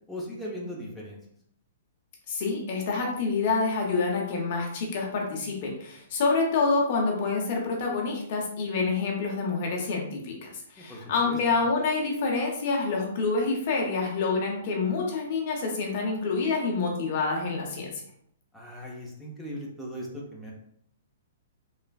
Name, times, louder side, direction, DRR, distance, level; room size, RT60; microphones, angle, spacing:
voice 1, 0.1-1.2 10.8-11.4 18.5-20.5, equal, 5° left, -5 dB, 0.6 m, -38 dB
voice 2, 2.3-17.9, left 4 dB, 45° left, 0 dB, 0.7 m, -27 dB
3.2 x 2.3 x 2.3 m, 0.68 s
figure-of-eight pair, 115°, 0 cm